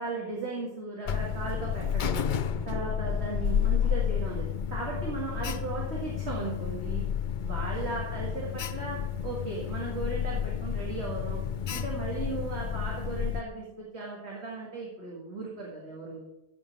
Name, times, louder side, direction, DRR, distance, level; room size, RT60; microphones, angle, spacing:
voice 1, 0.0-2.2 2.7-7.0 7.4-9.0 9.2-11.4 11.7-16.2, right 3 dB, 70° right, -4 dB, 2.3 m, -36 dB
Alarm, 1.0-13.4, left 8 dB, 55° left, 0.6 m, -31 dB
14.5 x 5.2 x 6.0 m, 0.94 s
omnidirectional pair, 1.2 m